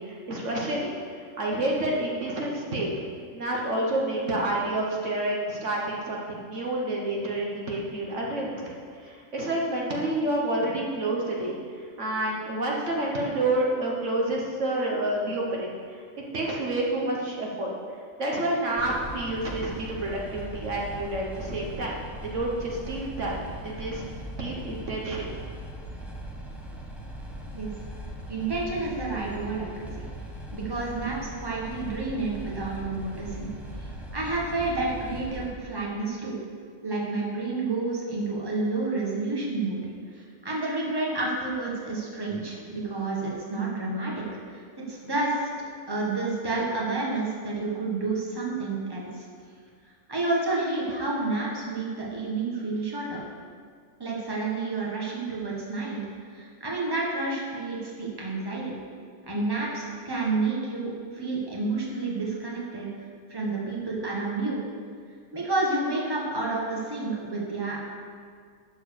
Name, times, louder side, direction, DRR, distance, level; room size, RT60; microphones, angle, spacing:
voice 1, 0.0-2.9 3.3-17.7 18.2-24.0 24.4-25.2, right 1 dB, 65° right, -2 dB, 1.5 m, -29 dB
sound 1, 18.7-35.5, right 1 dB, ahead, 1.1 m, -39 dB
voice 2, 28.3-29.9 30.5-33.5 33.8-36.3 36.8-39.8 40.1-44.2 44.5-45.5 45.9-49.3 50.1-53.2 54.0-56.0 56.3-58.7 59.3-62.9 63.3-64.6 65.3-67.8, right 3 dB, 20° right, -4 dB, 1.6 m, -30 dB
12.0 x 4.6 x 6.6 m, 2.1 s
omnidirectional pair, 1.4 m